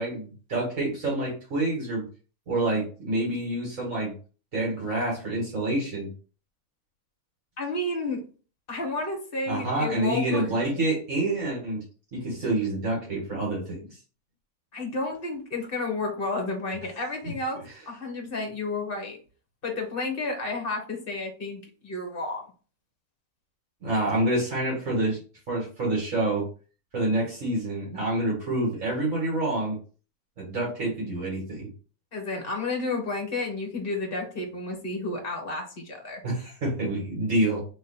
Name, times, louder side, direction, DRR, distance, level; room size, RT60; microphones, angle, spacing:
voice 1, 0.0-2.0 2.5-4.1 4.5-6.1 9.5-11.8 12.1-14.0 23.8-25.2 25.5-26.5 26.9-29.8 30.4-31.7 36.2-37.6, right 2 dB, 60° right, -4 dB, 2.0 m, -27 dB
voice 2, 7.6-8.2 8.7-10.5 14.7-19.2 19.6-22.4 32.1-36.2, left 2 dB, 40° left, 2 dB, 1.4 m, -31 dB
3.6 x 3.1 x 4.1 m, 0.37 s
omnidirectional pair, 1.6 m